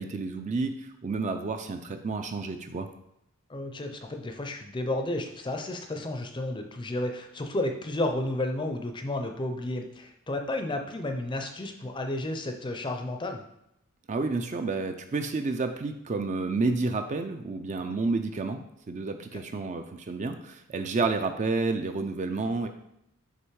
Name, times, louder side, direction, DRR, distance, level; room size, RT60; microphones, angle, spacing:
voice 1, 0.0-2.9 14.1-18.6 18.9-22.7, right 3 dB, 35° right, 7 dB, 0.4 m, -30 dB
voice 2, 3.5-13.4, left 1 dB, 20° left, 5 dB, 0.5 m, -32 dB
6.6 x 3.0 x 4.7 m, 0.79 s
head